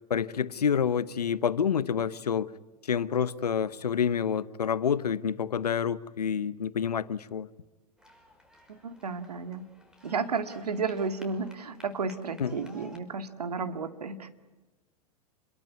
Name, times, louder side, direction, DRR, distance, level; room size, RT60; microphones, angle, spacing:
voice 1, 0.1-2.5 2.8-7.5 12.4-12.5, left 7 dB, 80° left, 1.0 m, -28 dB
sound 1, 8.0-13.0, left 1 dB, 5° right, 5.4 m, -56 dB
voice 2, 8.7-9.7 10.0-14.3, right 4 dB, 80° right, 2.3 m, -33 dB
27.5 x 22.5 x 9.4 m
figure-of-eight pair, 100°, 20 cm